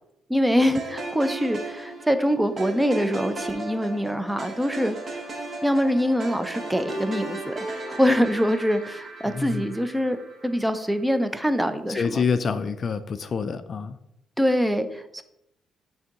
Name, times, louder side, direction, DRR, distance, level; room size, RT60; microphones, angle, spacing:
voice 1, 0.3-5.0 5.6-7.6 7.9-10.2 10.4-12.2 14.4-15.2, equal, 5° right, 10 dB, 0.5 m, -24 dB
sound 1, 0.7-11.0, right 2 dB, 45° right, 1.2 m, -36 dB
voice 2, 9.3-9.7 11.9-14.0, left 5 dB, 45° left, 12 dB, 0.3 m, -27 dB
9.2 x 3.5 x 2.9 m, 0.81 s
cardioid pair, 90°, 0 cm